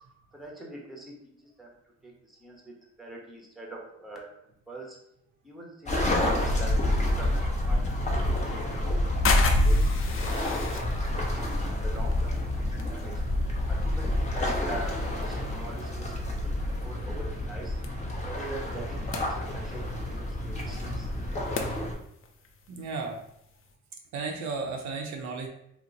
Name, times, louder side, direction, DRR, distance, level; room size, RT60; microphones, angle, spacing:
voice 1, 0.3-1.1 1.4-1.7 2.0-4.2 4.7-5.0 5.4-7.3 7.7-9.0 9.4-9.8 10.4-10.8 11.2-12.6 12.9-13.1 13.7-16.1 16.4-17.8 18.2-19.8 20.1-21.1, right 1 dB, ahead, -2 dB, 0.9 m, -43 dB
sound 1, 5.9-21.9, left 1 dB, 25° left, 0.8 m, -28 dB
sound 2, 7.9-23.7, left 5 dB, 45° left, 0.5 m, -38 dB
voice 2, 22.7-23.2 24.1-25.5, right 4 dB, 65° right, 2 dB, 0.6 m, -34 dB
2.9 x 2.1 x 3.8 m, 0.76 s
cardioid pair, 90°, 30 cm